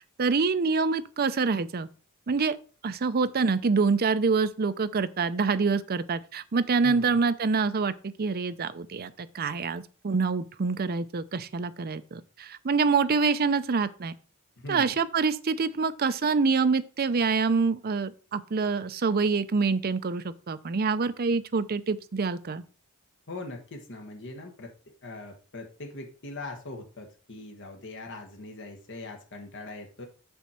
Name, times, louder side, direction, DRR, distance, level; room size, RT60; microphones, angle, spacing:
voice 1, 0.2-1.9 2.3-2.6 2.8-14.1 14.7-22.6, right 4 dB, 45° right, 0.5 m, -26 dB
voice 2, 6.8-7.2 14.6-15.0 23.3-24.7 25.0-30.1, left 2 dB, 55° left, 1.3 m, -41 dB
7.0 x 6.2 x 4.3 m
head